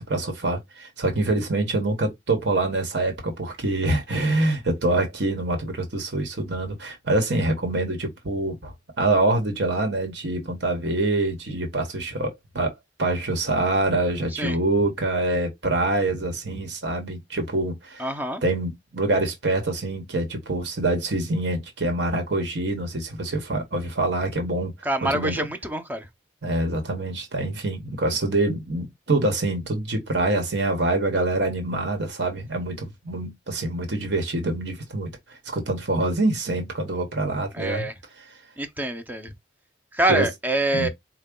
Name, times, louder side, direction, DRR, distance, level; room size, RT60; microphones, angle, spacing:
voice 1, 0.0-18.1 18.4-24.7 25.0-25.4 26.4-35.1 35.4-37.9 40.1-40.3 40.7-40.9, right 2 dB, 75° right, 1.2 m, -25 dB
voice 2, 18.0-18.4 24.8-26.1 37.5-37.9 38.6-39.3 39.9-40.9, right 1 dB, 10° right, 0.5 m, -25 dB
4.5 x 2.2 x 3.7 m
head